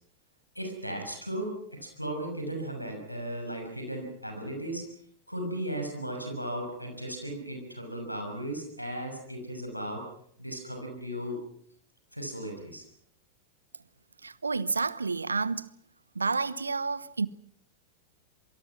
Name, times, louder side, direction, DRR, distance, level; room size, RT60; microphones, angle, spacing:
voice 1, 0.5-4.9 5.3-10.1 10.4-11.4 12.1-12.8, right 1 dB, 90° left, 6.3 m, -36 dB
voice 2, 14.2-15.7 16.1-17.3, right 4 dB, 75° right, 0.9 m, -30 dB
27.0 x 24.0 x 6.0 m
figure-of-eight pair, 90°, 0 cm